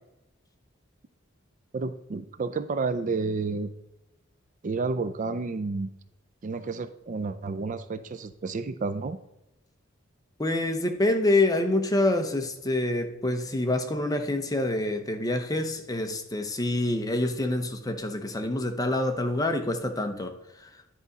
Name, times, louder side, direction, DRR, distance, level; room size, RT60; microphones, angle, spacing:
voice 1, 1.7-3.7 4.6-5.9 6.4-9.2, right 4 dB, 40° right, 0.4 m, -30 dB
voice 2, 10.4-20.3 20.6-20.7, left 2 dB, 20° left, 0.8 m, -26 dB
10.5 x 4.9 x 4.0 m
head